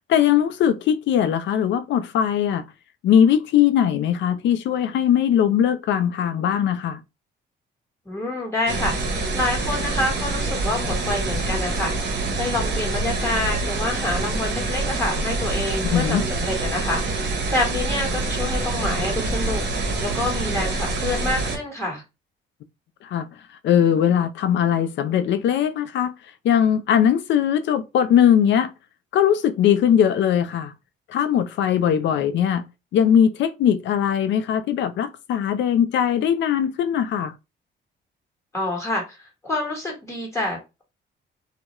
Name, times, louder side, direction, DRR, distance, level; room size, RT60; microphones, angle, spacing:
voice 1, 0.1-2.6 3.0-7.0 15.9-16.2 23.1-23.3 23.6-26.1 26.4-28.7 29.1-30.7 31.1-32.6 32.9-37.3, left 9 dB, 65° left, 0.4 m, -20 dB
voice 2, 8.1-22.0 38.5-39.2 39.4-40.8, left 1 dB, 15° left, 1.1 m, -27 dB
sound 1, 8.7-21.6, right 2 dB, 60° right, 0.8 m, -26 dB
2.2 x 2.1 x 2.9 m
cardioid pair, 90°, 20 cm